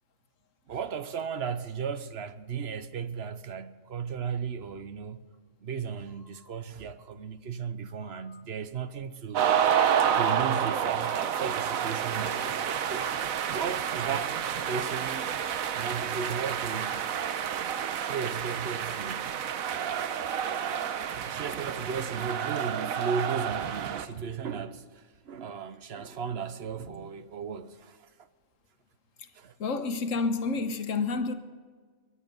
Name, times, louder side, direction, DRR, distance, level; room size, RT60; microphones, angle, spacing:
voice 1, 0.7-5.3 5.6-9.5 9.9-13.1 13.5-15.4 15.7-17.0 18.0-19.4 21.2-28.1 29.3-29.5, right 6 dB, 55° right, 1.0 m, -35 dB
sound 1, 9.3-24.1, right 8 dB, 80° right, 1.2 m, -29 dB
voice 2, 20.9-21.4 29.2-29.3 29.6-31.4, left 4 dB, 70° left, 1.4 m, -31 dB
22.5 x 10.0 x 5.3 m
omnidirectional pair, 1.4 m